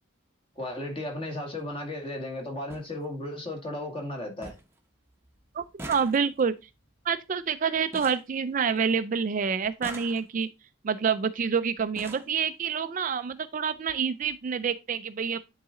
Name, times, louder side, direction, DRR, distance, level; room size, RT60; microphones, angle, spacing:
voice 1, 0.6-4.6, left 1 dB, 25° left, 1.9 m, -35 dB
sound 1, 0.6-0.8 2.0-2.1 2.3-2.4 2.7-2.9 3.3-3.8 4.1-4.2 4.4-4.8 5.1-9.1 9.6-10.6 11.4-11.5 11.8-12.4 13.3-13.4 13.8-13.9 14.2-14.3, right 2 dB, 10° right, 0.8 m, -45 dB
voice 2, 5.5-6.5 7.1-10.5 10.8-15.4, right 6 dB, 40° right, 0.3 m, -27 dB
9.9 x 4.0 x 3.7 m
head